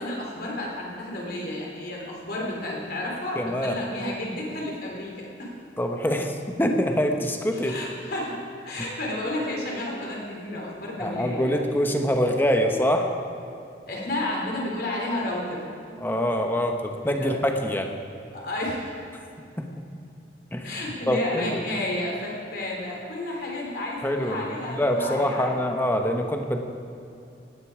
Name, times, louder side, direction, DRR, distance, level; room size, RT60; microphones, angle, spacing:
voice 1, 0.0-5.5 7.5-8.4 8.6-11.6 13.9-15.6 17.0-17.3 18.3-19.0 20.6-25.6, left 1 dB, 55° left, -3 dB, 3.7 m, -31 dB
voice 2, 3.4-3.8 5.8-7.8 11.0-13.1 16.0-18.0 19.1-19.2 19.6-19.7 20.5-21.6 24.0-24.4 24.7-26.6, equal, 10° left, 4 dB, 1.1 m, -25 dB
18.0 x 10.5 x 4.9 m, 2.6 s
head